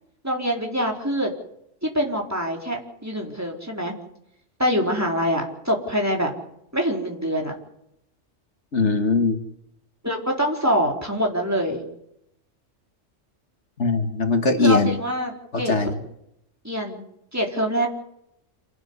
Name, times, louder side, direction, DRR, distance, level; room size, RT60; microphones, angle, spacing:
voice 1, 0.2-1.3 1.8-3.9 4.6-6.3 6.7-7.5 10.0-11.8 14.6-15.8 16.6-17.0 17.3-17.9, equal, 10° right, 0 dB, 4.4 m, -24 dB
voice 2, 8.7-9.4 13.8-15.0 15.5-15.9, left 3 dB, 65° left, 5 dB, 2.2 m, -21 dB
27.5 x 12.5 x 9.8 m, 0.77 s
omnidirectional pair, 1.3 m